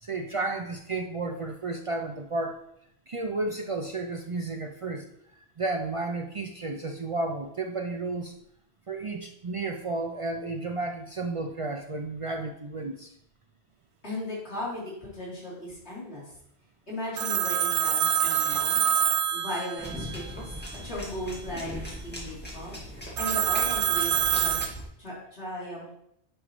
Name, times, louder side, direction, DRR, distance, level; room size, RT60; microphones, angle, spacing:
voice 1, 0.0-2.6 3.1-5.1 5.6-8.3 8.9-13.1 18.2-18.6, right 3 dB, 45° right, 3 dB, 0.4 m, -32 dB
voice 2, 14.0-16.3 16.9-18.9 19.3-20.5 20.8-22.8 23.2-24.6 25.0-26.0, left 1 dB, 80° left, -8 dB, 3.6 m, -37 dB
Telephone, 17.2-20.2 23.2-24.7, right 9 dB, 85° right, 0.9 m, -26 dB
sound 1, 19.8-24.8, equal, 10° left, 1.8 m, -39 dB
9.9 x 5.1 x 3.0 m, 0.73 s
omnidirectional pair, 1.1 m